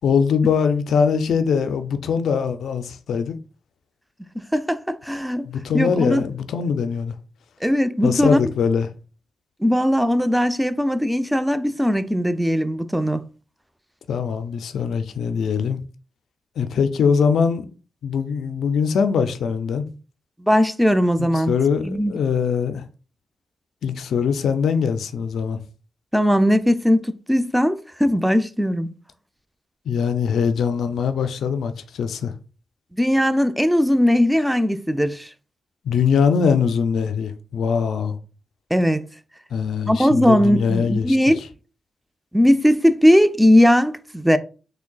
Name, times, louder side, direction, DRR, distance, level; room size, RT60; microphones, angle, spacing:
voice 1, 0.0-3.4 5.4-7.1 8.0-8.9 14.1-15.8 16.6-17.7 18.0-19.9 21.2-22.9 23.8-25.6 29.9-32.3 35.8-38.2 39.5-41.2, left 6 dB, 75° left, 0.3 m, -22 dB
voice 2, 4.5-5.4 5.7-6.2 7.6-8.4 9.6-13.2 20.4-21.5 21.8-22.1 26.1-28.9 32.9-35.3 38.7-39.0 39.9-41.4 42.3-44.4, equal, 5° right, 0.4 m, -19 dB
3.6 x 3.3 x 2.2 m
supercardioid pair, 45°, 0 cm